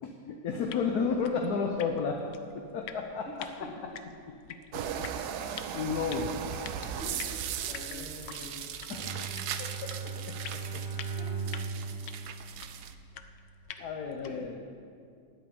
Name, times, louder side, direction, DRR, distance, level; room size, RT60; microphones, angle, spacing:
voice 1, 0.0-2.2 2.5-3.7 4.3-5.1 5.7-6.3 8.9-9.2 9.6-10.8 13.8-14.5, left 5 dB, 65° left, 3 dB, 1.3 m, -33 dB
sound 1, 0.6-14.6, left 8 dB, 85° left, 1.4 m, -48 dB
sound 2, 4.7-12.9, right 8 dB, 70° right, 1.2 m, -38 dB
voice 2, 7.0-8.7 10.7-10.8 11.2-11.3 11.6-11.7 12.8-12.9 13.8-13.9 14.2-14.7, left 1 dB, 40° left, -2 dB, 2.5 m, -45 dB
Bowed string instrument, 8.9-13.3, right 5 dB, 30° right, 2.3 m, -38 dB
9.6 x 8.6 x 9.7 m, 2.3 s
omnidirectional pair, 1.9 m